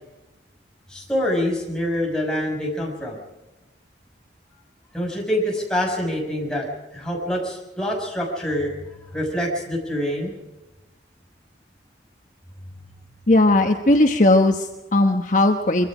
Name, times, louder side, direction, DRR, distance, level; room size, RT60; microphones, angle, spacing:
voice 1, 0.9-3.2 4.9-8.7 9.1-10.4, equal, 5° left, -2 dB, 6.2 m, -25 dB
voice 2, 13.3-15.9, left 2 dB, 45° left, 4 dB, 1.2 m, -17 dB
25.0 x 23.0 x 5.0 m, 1.0 s
head